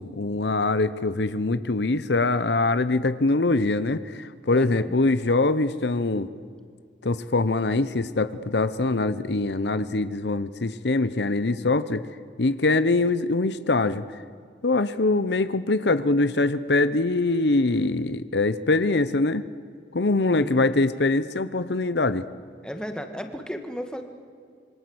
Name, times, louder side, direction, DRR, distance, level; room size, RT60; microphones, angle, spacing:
voice 1, 0.0-6.3 7.0-12.0 12.4-14.0 14.6-19.4 19.9-22.2, left 2 dB, 70° left, 13 dB, 0.9 m, -23 dB
voice 2, 4.5-5.0 20.3-20.7 22.6-24.0, equal, 5° left, 6 dB, 1.9 m, -35 dB
27.0 x 24.0 x 8.0 m, 2.2 s
head